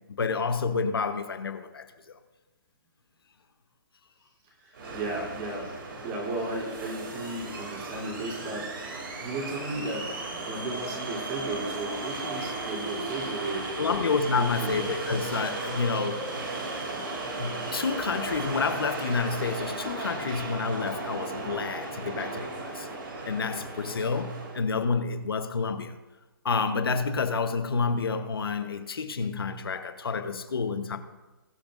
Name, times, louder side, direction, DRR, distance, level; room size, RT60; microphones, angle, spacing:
voice 1, 0.2-2.2 13.8-16.6 17.4-22.9 23.2-26.0 26.4-31.0, left 4 dB, 90° left, 1.1 m, -29 dB
voice 2, 4.6-5.7 6.0-8.7 9.2-14.0 14.3-14.8, right 2 dB, 25° right, 3.5 m, -35 dB
sound 1, 4.7-24.6, right 2 dB, 70° right, 2.8 m, -35 dB
21.0 x 7.3 x 2.6 m
hypercardioid pair, 160°, 12 cm